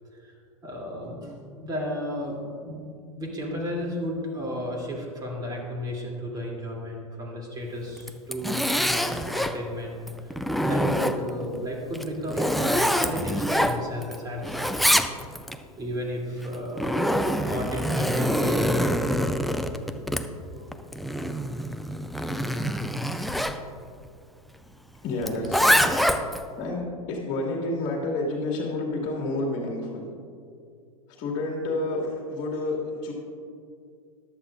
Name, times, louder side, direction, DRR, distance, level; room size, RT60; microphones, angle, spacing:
voice 1, 0.1-2.9 3.2-15.0 15.7-18.6 20.5-20.7, equal, 20° right, -1 dB, 2.8 m, -34 dB
Zipper (clothing), 8.0-9.6 10.1-11.4 11.9-14.2 14.4-15.6 16.4-23.6 25.2-26.4, equal, ahead, 0.4 m, -25 dB
voice 2, 25.0-26.8 27.1-30.1 31.1-33.1, left 2 dB, 40° left, -1 dB, 2.0 m, -30 dB
14.5 x 11.5 x 2.5 m, 2.3 s
hypercardioid pair, 100°, 19 cm